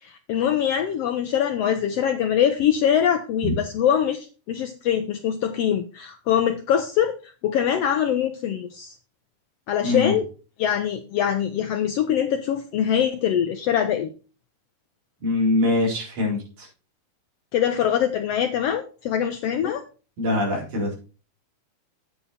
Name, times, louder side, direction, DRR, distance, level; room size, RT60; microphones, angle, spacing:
voice 1, 0.0-9.0 9.7-10.3 10.6-14.1 17.5-19.8, left 9 dB, 85° left, 7 dB, 1.4 m, -23 dB
voice 2, 9.8-10.1 15.2-16.7 20.2-20.9, left 2 dB, 65° right, -2 dB, 5.5 m, -23 dB
8.7 x 8.5 x 4.3 m, 0.35 s
omnidirectional pair, 3.7 m